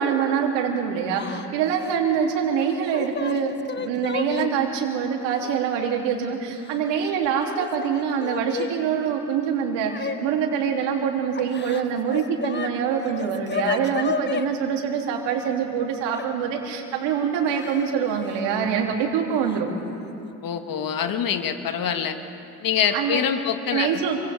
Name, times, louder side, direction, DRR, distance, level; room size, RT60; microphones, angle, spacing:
voice 1, 0.0-19.7 22.9-23.3 23.7-24.2, right 7 dB, 65° right, 1 dB, 3.3 m, -25 dB
Yell / Crying sobbing, 1.1-1.5 1.8-2.0 2.7-4.5 5.4-5.5 6.5-7.1 7.4-8.7 9.9-10.2 11.4-12.7 13.0-14.5 16.1-16.3 17.5-17.9 18.2-18.4 19.5-19.6 20.0-20.3, left 6 dB, 25° left, 1.0 m, -31 dB
voice 2, 20.4-22.2 22.6-24.0, left 8 dB, 45° left, 7 dB, 1.9 m, -25 dB
30.0 x 24.0 x 3.6 m, 2.7 s
hypercardioid pair, 60°, 47 cm